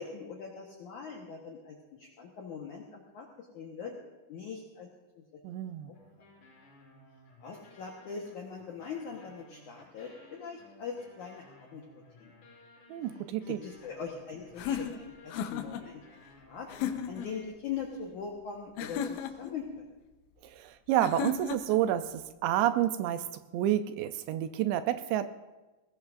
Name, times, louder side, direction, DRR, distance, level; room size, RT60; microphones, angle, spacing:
voice 1, 0.0-3.9 4.3-4.9 5.3-5.4 5.9-6.0 7.4-11.8 12.2-12.3 13.5-19.9, left 6 dB, 75° left, -1 dB, 1.8 m, -42 dB
voice 2, 5.4-5.9 12.9-13.6 20.4-25.3, right 12 dB, 80° right, 10 dB, 2.7 m, -29 dB
sound 1, 5.9-17.4, left 1 dB, 45° left, 5.5 m, -57 dB
sound 2, 14.6-15.9 16.7-17.3 18.8-19.6 21.0-21.8, left 8 dB, 90° left, 3.2 m, -35 dB
21.0 x 18.0 x 2.5 m, 1.1 s
omnidirectional pair, 5.3 m